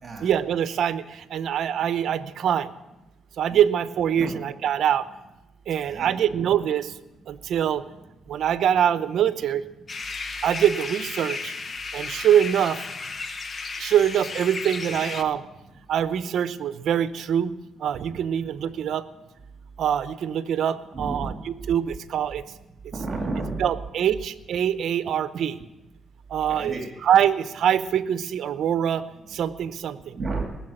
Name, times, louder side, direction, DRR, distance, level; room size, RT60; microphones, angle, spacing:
voice 1, 0.2-2.7 3.4-5.1 5.7-6.9 7.3-7.8 8.3-9.6 10.4-11.5 11.9-12.8 13.8-15.4 15.9-17.5 17.8-19.1 19.8-22.4 23.6-25.6 26.3-30.2, right 9 dB, 70° right, 13 dB, 0.8 m, -24 dB
sound 1, 9.9-15.2, left 4 dB, 40° left, 1.1 m, -34 dB
voice 2, 20.9-21.3 22.9-23.6 26.5-26.8 30.1-30.4, right 3 dB, 35° right, 2 dB, 2.9 m, -31 dB
19.0 x 7.3 x 8.9 m, 1.0 s
cardioid pair, 90°, 0 cm